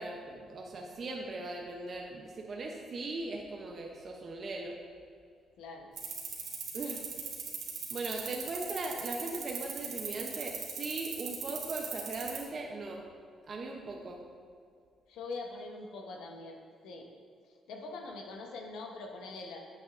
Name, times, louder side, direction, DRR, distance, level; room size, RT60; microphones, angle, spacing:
voice 1, 0.0-4.8 6.7-7.0 7.9-13.0 13.5-14.2, right 2 dB, 45° right, 0 dB, 0.7 m, -39 dB
voice 2, 5.6-5.9 15.1-17.1 17.7-19.6, left 3 dB, 85° left, 2 dB, 0.9 m, -43 dB
sound 1, 6.0-12.4, right 7 dB, 80° right, 1.5 m, -38 dB
8.7 x 7.8 x 2.5 m, 2.2 s
cardioid pair, 90°, 0 cm